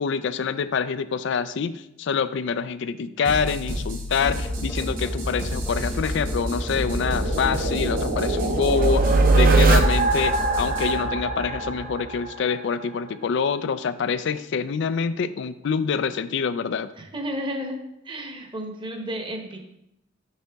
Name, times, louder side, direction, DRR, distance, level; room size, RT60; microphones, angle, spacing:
voice 1, 0.0-16.9, left 6 dB, 65° left, 14 dB, 0.4 m, -26 dB
sound 1, 3.2-10.9, left 1 dB, 90° right, 2.3 m, -33 dB
sound 2, 4.2-12.4, equal, 10° left, 0.8 m, -31 dB
sound 3, 5.8-12.6, right 3 dB, 50° right, 0.7 m, -22 dB
voice 2, 17.0-17.8 18.0-19.6, equal, 25° right, 3 dB, 0.9 m, -32 dB
6.6 x 5.5 x 3.5 m, 0.83 s
head